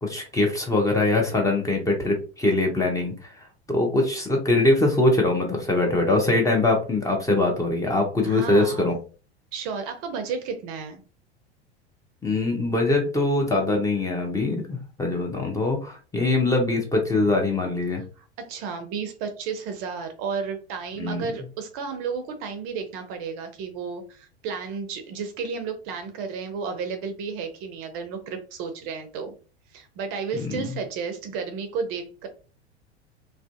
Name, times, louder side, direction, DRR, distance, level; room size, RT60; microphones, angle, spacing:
voice 1, 0.0-8.9 12.2-18.0 21.0-21.3 30.6-30.8, left 2 dB, 10° left, 1 dB, 0.6 m, -23 dB
voice 2, 8.2-8.9 9.5-11.0 18.2-29.3 29.7-32.3, right 5 dB, 45° right, 7 dB, 0.5 m, -32 dB
2.5 x 2.2 x 2.4 m, 0.36 s
figure-of-eight pair, 85°, 33 cm